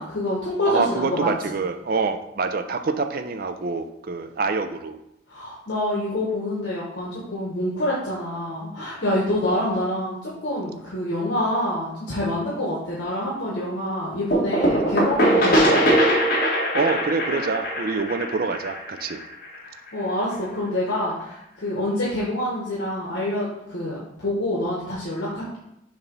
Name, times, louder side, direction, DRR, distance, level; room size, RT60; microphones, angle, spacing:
voice 1, 0.0-1.3 5.3-15.8 19.9-25.6, left 1 dB, 70° left, -6 dB, 1.4 m, -26 dB
voice 2, 0.7-5.0 9.5-9.8 16.7-19.2, right 4 dB, 50° right, 8 dB, 0.4 m, -26 dB
sound 1, 14.3-19.9, equal, 50° left, 1.6 m, -21 dB
6.8 x 2.9 x 5.3 m, 0.84 s
head